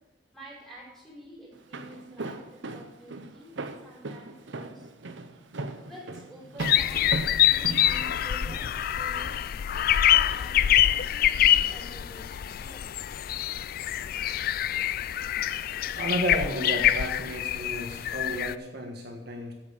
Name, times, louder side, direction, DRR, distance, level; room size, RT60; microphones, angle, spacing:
voice 1, 0.3-4.9 5.8-7.0 7.4-9.3 9.7-12.9, equal, ahead, -6 dB, 4.5 m, -49 dB
Walk footsteps, 1.5-8.7, right 2 dB, 85° right, 0.8 m, -37 dB
sound 1, 6.6-18.5, left 11 dB, 50° left, 0.3 m, -25 dB
sound 2, 6.8-12.0, left 2 dB, 75° left, 0.8 m, -49 dB
voice 2, 15.9-19.5, right 1 dB, 60° right, 0 dB, 1.6 m, -32 dB
8.6 x 8.0 x 6.7 m, 1.0 s
head